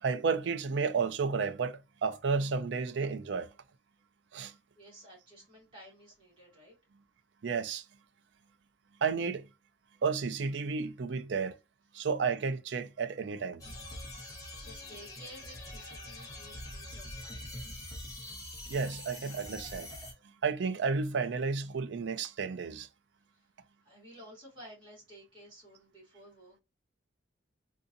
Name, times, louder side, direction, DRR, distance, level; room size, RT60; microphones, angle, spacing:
voice 1, 0.0-3.5 4.3-4.6 7.4-7.9 9.0-9.5 10.0-11.6 11.9-13.6 18.7-19.9 20.4-22.9, right 5 dB, 65° right, 0.4 m, -32 dB
voice 2, 4.5-6.8 14.3-17.7 23.3-23.5 23.8-26.6, equal, 25° right, 2.1 m, -54 dB
sound 1, 13.6-20.1, left 1 dB, 20° left, 1.0 m, -44 dB
3.6 x 2.7 x 2.5 m
head